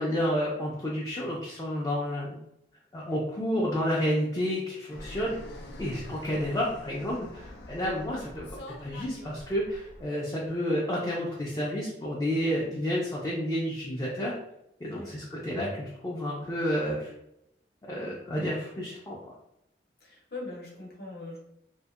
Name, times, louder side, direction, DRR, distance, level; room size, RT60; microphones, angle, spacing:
voice 1, 0.0-2.4 2.9-5.4 5.8-8.5 8.8-14.4 14.8-17.1 17.9-19.2, equal, 20° left, -5 dB, 0.4 m, -30 dB
Fixed-wing aircraft airplane, 4.9-10.1, left 1 dB, 90° left, 0.4 m, -45 dB
voice 2, 20.0-21.4, left 2 dB, 60° left, -3 dB, 0.7 m, -41 dB
2.6 x 2.0 x 2.3 m, 0.80 s
head